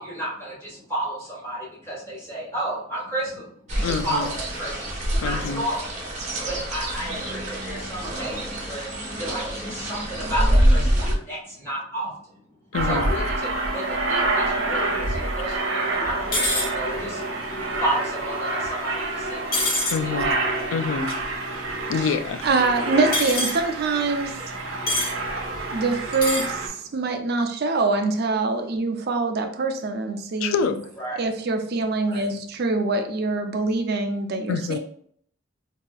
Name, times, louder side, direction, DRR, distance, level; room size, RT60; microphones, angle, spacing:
voice 1, 0.0-3.5 3.7-5.9 6.5-8.9 9.1-12.1 12.9-19.6 20.0-20.3 31.0-31.3 31.8-32.4, right 1 dB, 10° left, -7 dB, 1.5 m, -32 dB
sound 1, 3.7-11.1, equal, 35° right, 0.9 m, -25 dB
voice 2, 3.8-4.4 5.2-5.7 12.7-13.1 19.9-20.4 20.7-21.2 21.9-22.5 30.4-30.8 34.5-34.8, left 5 dB, 85° left, 10 dB, 0.3 m, -26 dB
Aircraft, 12.7-26.7, right 2 dB, 85° right, 0.9 m, -28 dB
sound 2, 16.3-16.7 19.5-20.0 23.1-23.6 24.9-25.1 26.1-26.5, left 1 dB, 45° left, 0.8 m, -24 dB
voice 3, 22.4-24.3 25.7-26.6 26.9-30.7 31.2-34.8, right 3 dB, 55° right, 4 dB, 0.5 m, -24 dB
4.0 x 2.7 x 2.3 m, 0.62 s
head